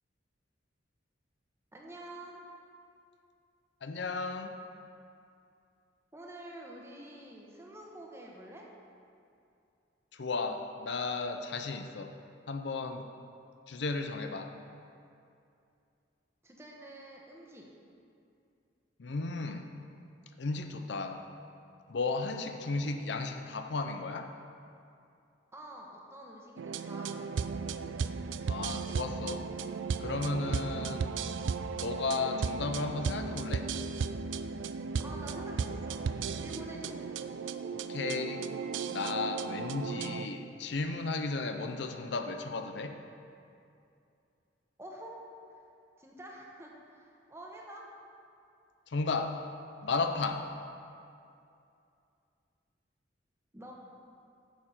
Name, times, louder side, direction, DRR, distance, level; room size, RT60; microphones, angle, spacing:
voice 1, 1.7-2.4 6.1-8.7 16.4-17.6 25.5-27.3 35.0-36.0 36.3-37.0 44.8-45.2 46.0-47.9 53.5-53.7, right 1 dB, 15° right, -2 dB, 1.1 m, -47 dB
voice 2, 3.8-4.5 10.1-12.1 12.5-13.1 13.7-14.5 19.0-19.7 20.4-21.2 21.9-24.3 28.5-29.5 30.0-31.1 31.7-33.7 37.7-38.5 38.9-43.0 48.9-49.4 49.8-50.5, left 3 dB, 65° left, 6 dB, 0.5 m, -34 dB
sound 1, 26.6-40.3, right 5 dB, 80° right, 0.4 m, -35 dB
9.2 x 6.8 x 5.6 m, 2.5 s
head